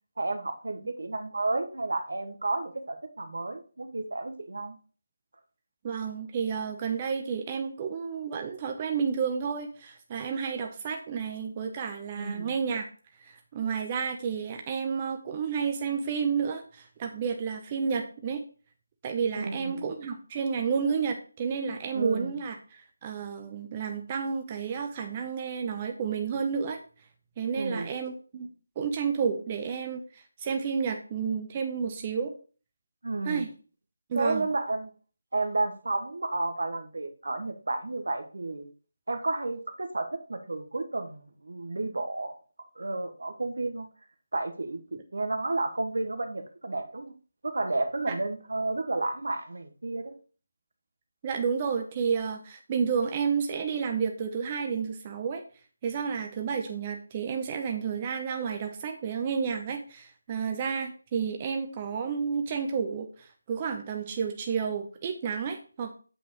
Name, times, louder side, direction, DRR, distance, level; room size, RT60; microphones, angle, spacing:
voice 1, 0.2-4.7 12.2-12.5 19.3-19.9 21.9-22.3 27.5-27.9 33.0-33.5 34.1-34.9 35.3-38.7 39.1-42.4 42.8-43.9 44.3-47.1 47.4-50.1, right 2 dB, 60° right, 7 dB, 1.3 m, -32 dB
voice 2, 5.8-12.9 13.3-18.4 19.0-26.8 27.4-28.5 28.8-32.3 33.2-33.5 34.1-34.5 44.9-45.0 48.1-48.2 51.2-55.4 55.8-65.9, right 6 dB, 25° right, 4 dB, 0.8 m, -31 dB
8.5 x 7.4 x 3.1 m, 0.38 s
figure-of-eight pair, 160°, 0 cm